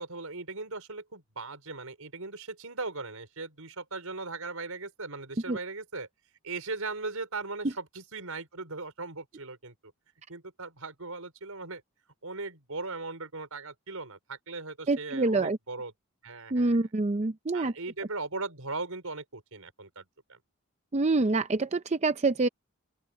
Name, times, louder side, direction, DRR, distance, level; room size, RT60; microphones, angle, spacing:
voice 1, 0.0-6.1 6.4-9.9 10.3-11.8 12.2-15.9 16.2-16.8 17.5-20.4, right 3 dB, 80° right, 5.1 m, -38 dB
voice 2, 14.9-15.6 16.5-17.7 20.9-22.5, right 3 dB, 30° right, 0.5 m, -26 dB
open air
head